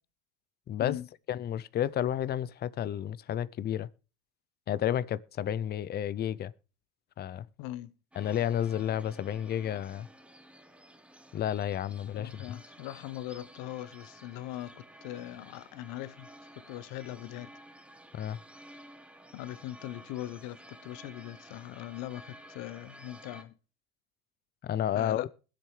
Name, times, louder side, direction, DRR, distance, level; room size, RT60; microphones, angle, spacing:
voice 1, 1.3-3.9 4.7-6.5 7.2-7.5 8.2-10.1 11.3-12.6 18.1-18.4 24.6-25.3, left 10 dB, 25° left, 0.5 m, -31 dB
voice 2, 7.6-7.9 12.1-16.3 16.5-17.5 19.3-23.5 24.9-25.3, left 14 dB, 55° left, 0.9 m, -40 dB
sound 1, 8.1-23.4, right 1 dB, 5° right, 1.0 m, -53 dB
21.5 x 7.7 x 3.2 m
supercardioid pair, 100°, 42 cm